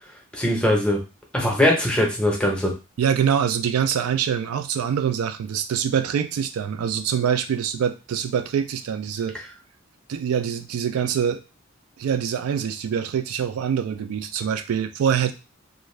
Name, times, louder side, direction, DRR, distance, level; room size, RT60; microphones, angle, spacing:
voice 1, 0.3-1.0 1.3-2.7, left 1 dB, 5° left, -1 dB, 0.7 m, -21 dB
voice 2, 3.0-9.4 10.1-11.4 12.0-15.3, right 8 dB, 80° right, 9 dB, 0.3 m, -24 dB
2.5 x 2.2 x 3.1 m, 0.29 s
head